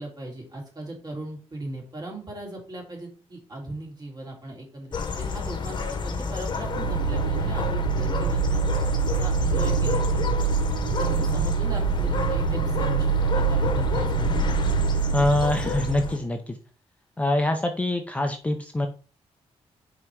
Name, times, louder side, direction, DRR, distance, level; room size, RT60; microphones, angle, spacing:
voice 1, 0.0-8.6 9.1-10.5 11.0-14.4, right 2 dB, 35° right, 0 dB, 3.0 m, -38 dB
sound 1, 4.9-16.2, left 4 dB, 40° left, 1.0 m, -29 dB
sound 2, 6.6-16.2, right 7 dB, 65° right, 0.5 m, -26 dB
voice 2, 15.1-16.6 17.2-18.9, left 1 dB, 10° left, 4 dB, 0.6 m, -24 dB
5.6 x 4.7 x 4.7 m, 0.38 s
wide cardioid pair, 145°, 11 cm